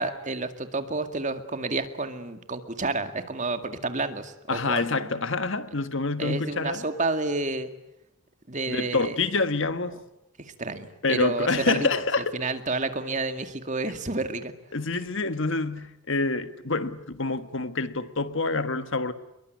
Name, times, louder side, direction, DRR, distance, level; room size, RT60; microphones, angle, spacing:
voice 1, 0.0-5.1 6.2-7.7 8.5-9.2 10.4-11.9 12.3-14.5, right 3 dB, 35° right, 2.2 m, -30 dB
voice 2, 4.5-6.8 8.7-10.0 11.0-12.3 14.7-19.1, left 3 dB, 55° left, 1.5 m, -27 dB
27.5 x 22.5 x 9.4 m
head